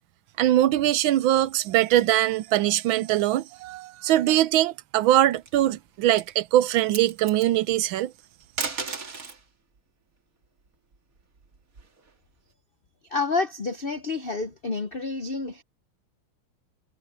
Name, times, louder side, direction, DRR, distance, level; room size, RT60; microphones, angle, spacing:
voice 1, 0.4-8.1, right 13 dB, 75° right, 1.3 m, -22 dB
sound 1, 5.2-5.7 6.1-6.3 6.7-7.5 8.4-9.4 10.9-12.1, right 4 dB, 40° right, 2.3 m, -34 dB
voice 2, 13.1-15.6, left 3 dB, 75° left, 0.5 m, -29 dB
omnidirectional pair, 2.3 m